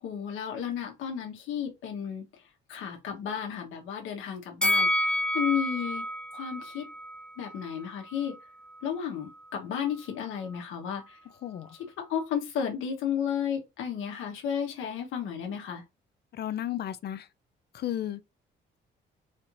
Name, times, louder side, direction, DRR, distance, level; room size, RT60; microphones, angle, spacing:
voice 1, 0.0-2.2 2.7-6.0 6.3-6.9 7.4-8.3 8.8-11.2 11.7-15.8, left 8 dB, 85° left, 1.2 m, -33 dB
Bell, 4.6-7.8 8.1-8.3, left 1 dB, 5° left, 0.5 m, -29 dB
voice 2, 16.3-17.3 17.7-18.2, left 11 dB, 55° left, 0.5 m, -33 dB
4.2 x 3.0 x 2.5 m
cardioid pair, 90°, 20 cm